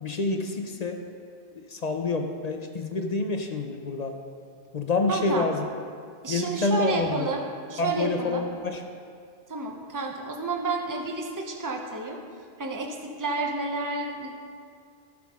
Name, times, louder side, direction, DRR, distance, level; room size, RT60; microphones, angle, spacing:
voice 1, 0.0-1.0 1.7-4.1 4.7-5.6 6.3-7.2 7.8-8.8, left 3 dB, 45° left, 5 dB, 0.7 m, -27 dB
voice 2, 5.1-5.5 6.2-8.4 9.5-12.2 12.6-14.3, right 3 dB, 20° right, 2 dB, 0.8 m, -30 dB
16.0 x 6.1 x 3.6 m, 2.2 s
omnidirectional pair, 1.1 m